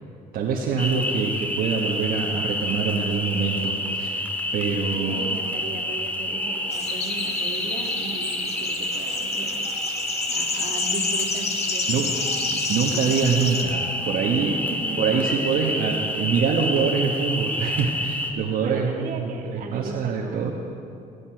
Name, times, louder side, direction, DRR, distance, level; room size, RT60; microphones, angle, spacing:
voice 1, 0.3-4.3 4.5-5.3 11.9-12.1 12.5-14.5 15.0-20.5, right 5 dB, 80° right, -2 dB, 1.4 m, -25 dB
sound 1, 0.8-18.3, left 1 dB, 10° left, 1.6 m, -28 dB
voice 2, 4.7-9.7 10.3-12.5 14.4-15.2 18.6-20.5, right 4 dB, 65° right, 1 dB, 2.1 m, -37 dB
sound 2, 6.7-13.6, left 4 dB, 45° left, 1.4 m, -30 dB
20.0 x 8.5 x 6.0 m, 2.6 s
cardioid pair, 100°, 15 cm